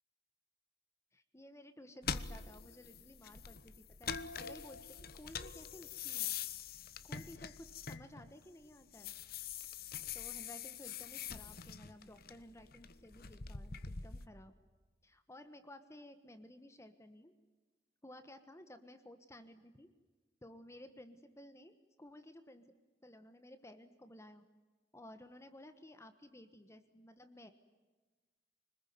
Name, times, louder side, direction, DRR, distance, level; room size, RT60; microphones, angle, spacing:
voice 1, 1.1-6.3 7.0-9.1 10.1-14.5 15.0-17.3 18.0-19.9 20.4-22.8 23.0-24.4 24.9-27.5, left 1 dB, 15° left, 10 dB, 1.3 m, -55 dB
sound 1, 2.0-8.4 8.8-14.3, left 7 dB, 55° left, 1.1 m, -44 dB
25.5 x 20.5 x 9.4 m, 1.3 s
head